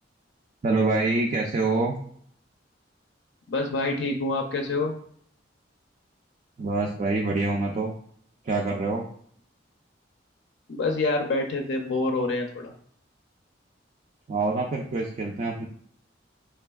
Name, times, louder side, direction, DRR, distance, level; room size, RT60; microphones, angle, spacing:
voice 1, 0.6-2.0 6.6-7.9 8.4-9.0 14.3-15.7, right 3 dB, 40° right, 0 dB, 0.4 m, -25 dB
voice 2, 3.5-4.9 10.7-12.7, left 2 dB, 65° left, 2 dB, 0.5 m, -26 dB
4.1 x 3.3 x 2.3 m, 0.62 s
head